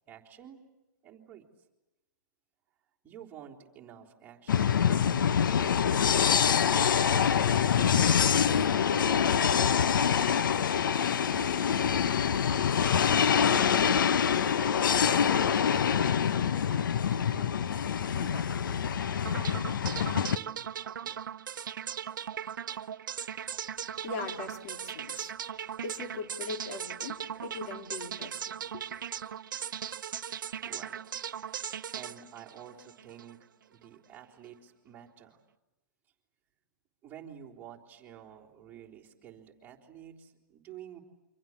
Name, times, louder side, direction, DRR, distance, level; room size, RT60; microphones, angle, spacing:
voice 1, 0.1-0.6 1.0-1.5 3.0-5.8 6.1-6.9 7.7-10.5 10.8-11.8 13.4-21.2 30.6-31.2 31.9-35.4 37.0-41.0, right 9 dB, 15° right, -4 dB, 3.7 m, -51 dB
sound 1, 4.5-20.4, left 7 dB, 75° left, 0.9 m, -25 dB
sound 2, 19.2-33.3, right 9 dB, 70° right, 0.9 m, -38 dB
voice 2, 24.0-25.3 25.8-28.9, left 4 dB, 50° left, 3 dB, 3.6 m, -40 dB
28.5 x 25.5 x 7.4 m, 0.98 s
hypercardioid pair, 145°, 11 cm